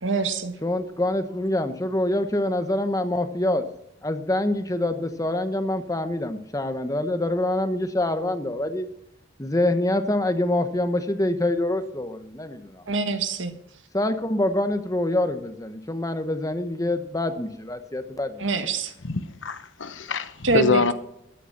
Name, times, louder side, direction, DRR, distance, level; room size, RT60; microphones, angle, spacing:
voice 1, 0.0-0.5 12.9-13.5 18.4-18.9 20.4-20.8, right 3 dB, 85° right, 1.6 m, -24 dB
voice 2, 0.6-3.6 4.0-8.9 9.4-12.8 13.9-18.5, left 1 dB, 20° left, 1.1 m, -25 dB
voice 3, 19.0-20.9, left 3 dB, 85° left, 1.0 m, -25 dB
14.0 x 9.4 x 5.8 m
head